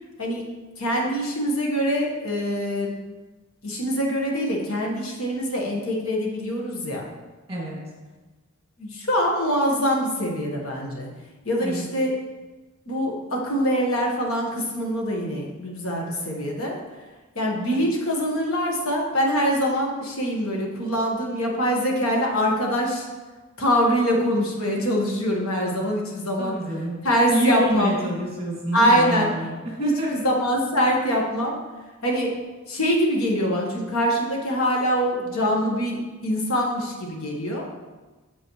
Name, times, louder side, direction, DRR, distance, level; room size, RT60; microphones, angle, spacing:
voice 1, 0.8-2.9 3.6-7.1 8.8-11.1 11.4-12.2 12.9-16.8 17.3-23.1 23.6-26.6 27.0-28.0 28.7-29.3 29.8-31.5 32.0-32.4 32.7-36.0 36.2-37.7, equal, 65° left, -1 dB, 1.6 m, -24 dB
voice 2, 26.4-27.0 27.3-29.5 29.8-30.1, right 1 dB, 25° right, -4 dB, 2.7 m, -26 dB
8.0 x 7.8 x 3.3 m, 1.2 s
head